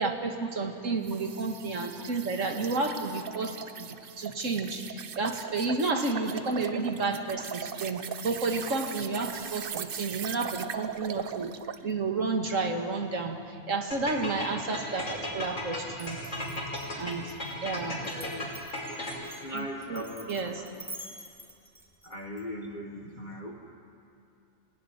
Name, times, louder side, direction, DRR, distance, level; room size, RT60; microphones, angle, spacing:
voice 1, 0.0-11.5 11.8-16.2 16.9-17.3 17.6-18.0 19.5-20.6, right 3 dB, 90° right, 3 dB, 2.3 m, -31 dB
sound 1, 1.0-11.9, right 8 dB, 50° right, 0.8 m, -39 dB
sound 2, 13.9-19.4, left 1 dB, 75° left, 5.5 m, -36 dB
Glass, 15.9-22.4, right 1 dB, ahead, 2.3 m, -47 dB
voice 2, 18.0-18.5 19.2-20.7 21.1-21.2 22.0-23.6, equal, 35° left, -2 dB, 2.0 m, -40 dB
26.0 x 16.5 x 10.0 m, 2.5 s
omnidirectional pair, 1.3 m